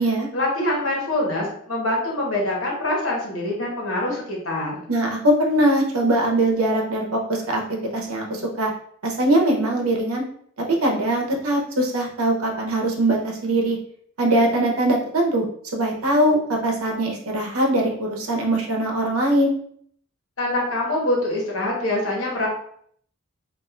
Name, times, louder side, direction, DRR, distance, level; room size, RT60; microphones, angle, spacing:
voice 1, 0.3-4.8 20.4-22.5, left 1 dB, 70° left, -3 dB, 1.2 m, -24 dB
voice 2, 4.9-7.6 7.9-8.7 9.0-10.2 10.8-13.8 14.2-15.5 15.7-19.5, right 1 dB, 90° right, 0 dB, 0.8 m, -21 dB
4.2 x 2.6 x 2.4 m, 0.63 s
head